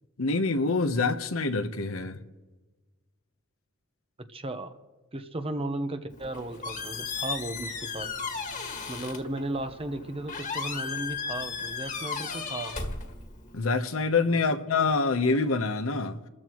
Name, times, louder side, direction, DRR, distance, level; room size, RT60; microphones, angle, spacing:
voice 1, 0.2-2.2 13.5-16.2, left 3 dB, 70° left, 1.1 m, -26 dB
voice 2, 4.3-4.8 5.1-8.1 8.9-12.8 14.3-14.5, right 1 dB, 25° right, 1.0 m, -35 dB
Squeak, 6.1-13.6, left 5 dB, 35° left, 1.9 m, -35 dB
29.0 x 14.0 x 3.1 m
head